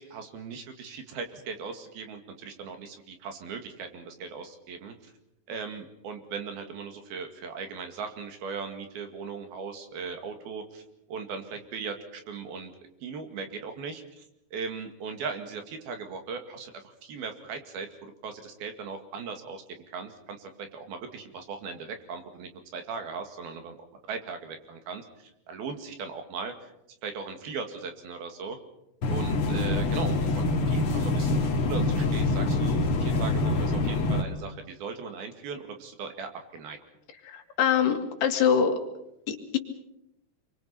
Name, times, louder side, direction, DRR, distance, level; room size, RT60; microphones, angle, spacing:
voice 1, 0.0-5.1 5.5-10.8 11.1-12.7 13.0-14.2 14.5-23.7 24.1-26.5 27.0-28.6 29.1-36.8, right 5 dB, 65° right, 6 dB, 4.0 m, -38 dB
sound 1, 29.0-34.2, left 2 dB, 45° left, 2.0 m, -25 dB
voice 2, 37.2-38.8 39.3-39.6, left 7 dB, 75° left, 4 dB, 4.2 m, -24 dB
27.5 x 23.5 x 5.8 m, 0.83 s
omnidirectional pair, 4.7 m